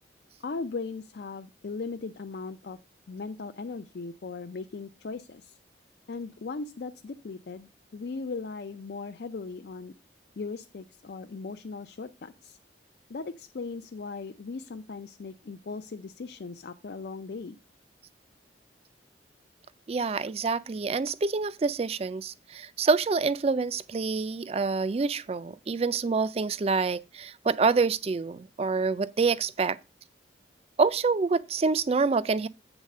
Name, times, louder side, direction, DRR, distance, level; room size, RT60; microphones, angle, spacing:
voice 1, 0.4-2.8 3.1-5.6 6.1-9.9 10.4-12.6 13.1-17.6, left 4 dB, 60° left, 0.4 m, -38 dB
voice 2, 19.9-29.8 30.8-32.5, right 4 dB, 35° right, 0.3 m, -27 dB
8.0 x 4.0 x 6.4 m
head